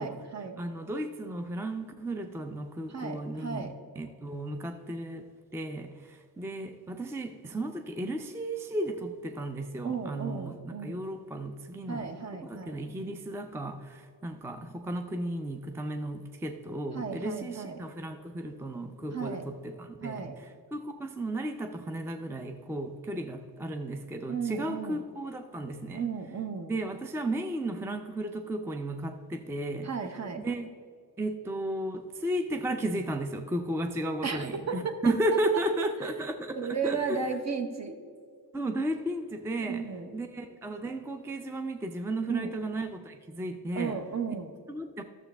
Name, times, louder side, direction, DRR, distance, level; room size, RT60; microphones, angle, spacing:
voice 1, 0.0-0.6 2.9-3.7 9.8-11.0 11.9-12.8 16.9-17.8 19.1-19.5 20.0-20.4 24.3-25.0 25.9-26.7 29.8-30.4 34.2-34.9 36.6-38.0 39.6-40.1 42.3-42.5 43.7-44.5, right 5 dB, 40° right, 6 dB, 0.9 m, -34 dB
voice 2, 0.6-20.3 20.7-26.1 26.7-29.9 30.4-30.7 31.2-37.2 38.5-39.9 40.1-44.0 44.7-45.0, right 1 dB, 5° right, 7 dB, 0.4 m, -34 dB
12.0 x 7.3 x 3.4 m, 2.1 s
wide cardioid pair, 110°, 41 cm